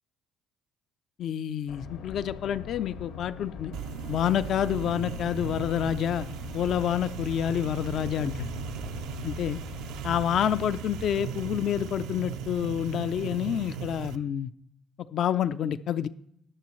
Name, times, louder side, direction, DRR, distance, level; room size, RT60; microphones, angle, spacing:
voice 1, 1.2-3.7 4.1-6.3 6.5-8.5 9.2-9.6 10.0-14.5 15.1-16.1, left 10 dB, 60° left, 13 dB, 0.4 m, -28 dB
sound 1, 1.7-10.0, left 7 dB, 85° left, 1.8 m, -42 dB
sound 2, 3.7-14.2, right 8 dB, 80° right, 0.6 m, -37 dB
19.0 x 6.9 x 3.1 m, 0.73 s
supercardioid pair, 75°, 0 cm